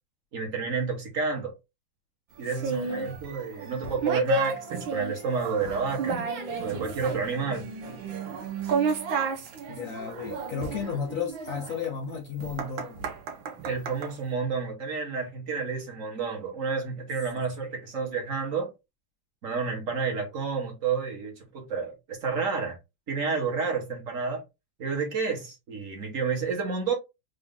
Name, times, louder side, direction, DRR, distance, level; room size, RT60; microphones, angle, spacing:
voice 1, 0.3-1.5 2.4-6.2 6.6-7.7 13.6-18.7 19.4-22.8 23.1-24.4 24.8-26.9, right 5 dB, 45° right, 1.4 m, -30 dB
voice 2, 2.5-3.2 9.7-13.1 17.3-17.4, left 6 dB, 75° left, 0.7 m, -34 dB
sound 1, 2.5-14.1, right 4 dB, 70° right, 1.6 m, -32 dB
3.9 x 2.7 x 3.6 m
omnidirectional pair, 2.2 m